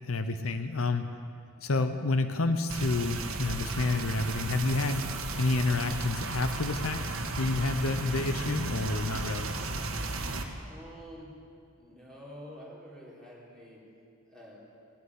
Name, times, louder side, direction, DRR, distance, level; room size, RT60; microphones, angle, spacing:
voice 1, 0.1-1.1 1.6-5.1 5.4-7.0 7.4-9.5, left 3 dB, 85° left, 9 dB, 0.8 m, -29 dB
sound 1, 2.7-10.4, right 3 dB, 80° right, 1.4 m, -35 dB
voice 2, 10.6-11.3 11.8-13.8 14.3-14.6, equal, 5° left, -6 dB, 3.8 m, -48 dB
18.0 x 8.1 x 9.7 m, 2.3 s
head